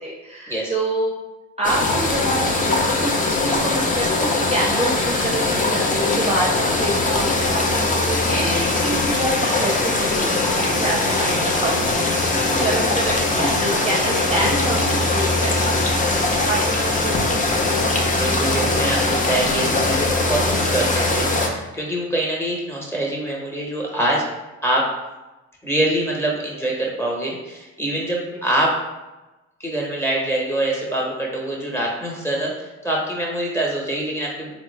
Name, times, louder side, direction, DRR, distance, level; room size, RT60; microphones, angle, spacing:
voice 1, 0.0-1.1 1.6-11.9 12.3-15.5 15.9-17.1 17.4-17.8 28.3-28.5, right 1 dB, 20° right, -5 dB, 0.6 m, -27 dB
sound 1, 1.6-21.5, left 2 dB, 25° left, 0.5 m, -21 dB
voice 2, 12.5-12.9 18.2-24.3 24.6-24.9 25.6-28.8 29.6-34.5, right 1 dB, 10° left, -3 dB, 0.9 m, -24 dB
3.6 x 2.0 x 3.1 m, 1.1 s
cardioid pair, 90°, 30 cm